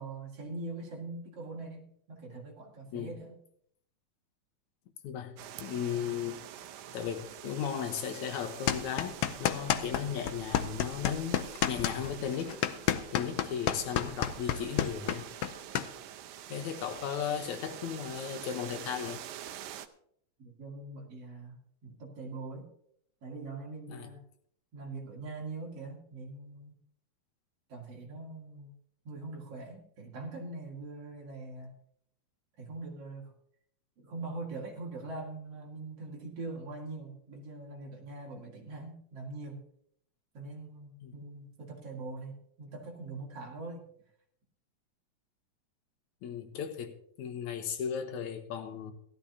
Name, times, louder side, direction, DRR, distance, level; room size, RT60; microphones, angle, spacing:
voice 1, 0.0-3.4 20.4-22.7 23.2-24.2 24.7-26.8 27.7-28.7 29.0-31.8 32.6-33.3 34.0-39.6 40.3-43.9, right 3 dB, 55° right, 3.2 m, -42 dB
voice 2, 5.0-5.3 5.6-6.4 6.9-11.4 11.7-12.6 13.1-15.3 16.5-19.3 23.9-24.1 41.0-41.1 46.2-48.9, left 8 dB, 75° left, 2.4 m, -36 dB
sound 1, 5.4-19.9, right 11 dB, 80° right, 2.0 m, -46 dB
sound 2, 8.7-10.0 10.3-15.9, left 11 dB, 90° left, 1.3 m, -29 dB
17.0 x 13.0 x 2.8 m
omnidirectional pair, 3.5 m